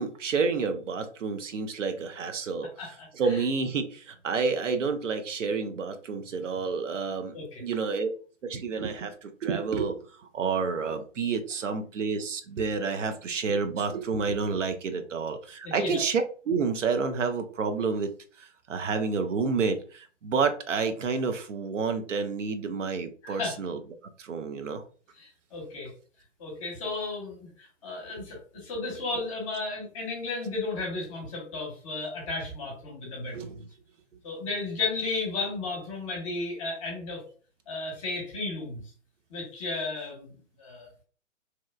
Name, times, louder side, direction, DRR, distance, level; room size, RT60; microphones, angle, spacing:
voice 1, 0.0-7.3 7.6-8.1 8.4-18.1 18.4-23.8 24.2-24.8 33.3-33.6, right 5 dB, 70° right, 7 dB, 0.6 m, -29 dB
voice 2, 2.8-3.4 7.3-7.6 15.6-16.0 23.2-23.6 25.2-25.9 26.4-33.7 34.2-37.2 37.7-38.8 39.3-40.9, left 3 dB, 25° left, 0 dB, 0.9 m, -34 dB
2.9 x 2.0 x 2.3 m, 0.39 s
figure-of-eight pair, 135°, 38 cm